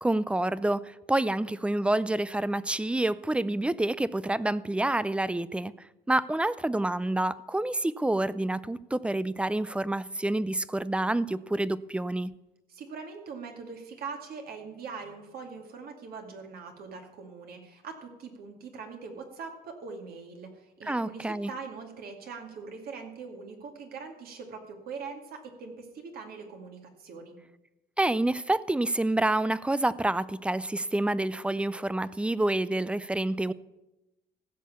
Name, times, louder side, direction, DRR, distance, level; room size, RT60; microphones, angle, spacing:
voice 1, 0.0-12.3 20.8-21.5 28.0-33.5, right 1 dB, 5° right, 18 dB, 0.4 m, -28 dB
voice 2, 12.7-27.4, right 5 dB, 65° right, 3 dB, 2.4 m, -42 dB
15.5 x 6.4 x 7.1 m, 0.99 s
cardioid pair, 110°, 17 cm